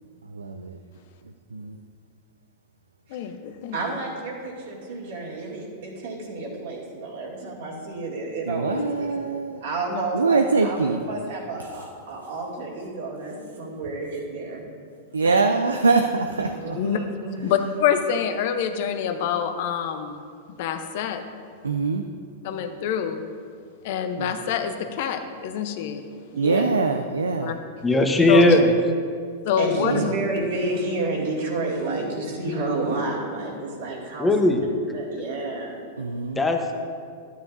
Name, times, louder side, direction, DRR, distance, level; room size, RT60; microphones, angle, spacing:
voice 1, 0.3-0.8 1.5-1.7 8.5-9.6 10.1-11.0 15.1-16.8 21.6-22.0 24.2-24.3 26.4-27.6 28.3-28.7 29.8-30.1 36.0-36.4, right 4 dB, 85° right, 6 dB, 0.4 m, -23 dB
voice 2, 3.1-3.8 8.7-8.8 16.7-17.0 17.4-20.2 20.6-21.2 22.4-23.2 23.8-26.1 27.4-27.5 28.3-28.4 29.4-30.1, left 8 dB, 55° left, 8 dB, 0.8 m, -26 dB
voice 3, 3.7-9.1 9.6-14.6 15.2-15.4 16.5-17.5 26.3-26.6 29.6-34.3 34.9-35.8, right 2 dB, 65° right, -4 dB, 2.4 m, -30 dB
voice 4, 27.8-28.7 34.2-34.6 36.4-36.8, left 1 dB, 10° left, 4 dB, 1.0 m, -18 dB
12.5 x 9.4 x 2.7 m, 2.2 s
hypercardioid pair, 100°, 0 cm